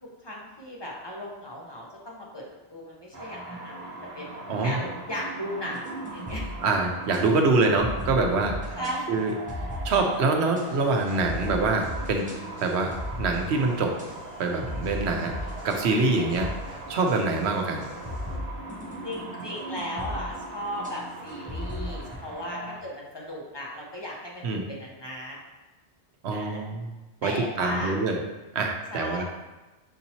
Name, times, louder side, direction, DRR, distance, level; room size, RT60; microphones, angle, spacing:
voice 1, 0.0-2.4 2.7-6.4 8.7-9.1 16.2-16.3 19.0-25.4 26.3-26.6 27.2-28.0 28.9-29.2, left 1 dB, 25° left, -4 dB, 0.7 m, -36 dB
sound 1, 3.1-22.8, right 2 dB, 45° right, 1.0 m, -40 dB
voice 2, 4.5-4.8 6.6-8.8 9.1-9.3 9.8-12.3 12.6-14.0 14.4-15.3 15.6-17.8 24.4-24.6 26.2-26.9 27.2-28.2 28.5-29.2, right 3 dB, 75° right, 3 dB, 0.9 m, -25 dB
sound 2, 5.7-7.2 7.8-8.9 9.5-10.2 10.6-10.7 11.2-14.1 14.6-15.8 16.3-17.1 18.0-22.2, left 1 dB, 10° right, 0.5 m, -37 dB
sound 3, 10.6-18.4, equal, 60° left, 1.1 m, -47 dB
5.9 x 2.8 x 2.8 m, 1.1 s
omnidirectional pair, 1.2 m